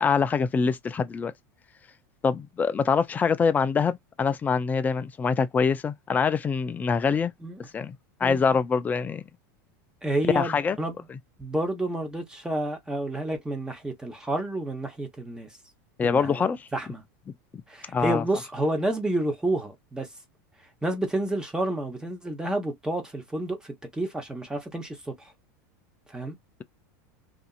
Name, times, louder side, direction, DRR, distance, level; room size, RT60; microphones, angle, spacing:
voice 1, 0.0-1.3 2.2-7.3 7.7-9.2 10.3-10.8 11.1-11.2 16.0-16.7 17.9-18.2, left 5 dB, 15° left, 0.4 m, -24 dB
voice 2, 10.0-10.9 11.4-15.5 16.0-16.4 16.7-17.0 17.7-20.1 20.8-25.1 26.1-26.3, right 1 dB, 5° right, 0.9 m, -30 dB
2.8 x 2.5 x 2.4 m
supercardioid pair, 125°, 10 cm